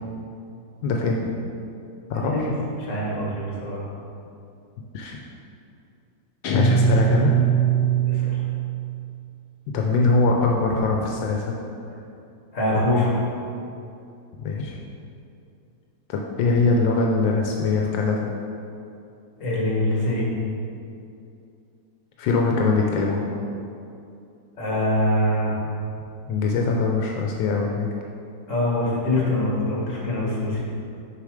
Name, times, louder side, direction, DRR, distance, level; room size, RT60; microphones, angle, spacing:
voice 1, 0.8-1.3 2.1-2.5 4.9-5.2 6.5-7.3 9.7-11.5 14.4-14.8 16.1-18.3 22.2-23.3 26.3-27.9, left 3 dB, 80° left, 0 dB, 1.4 m, -22 dB
voice 2, 2.1-2.5 2.8-3.8 8.1-8.4 12.5-13.2 19.4-20.3 24.6-25.6 28.5-30.6, left 1 dB, 45° left, -4 dB, 1.8 m, -24 dB
Guitar, 6.4-9.0, right 6 dB, 65° left, 1.3 m, -21 dB
6.8 x 4.9 x 4.9 m, 2.6 s
omnidirectional pair, 2.0 m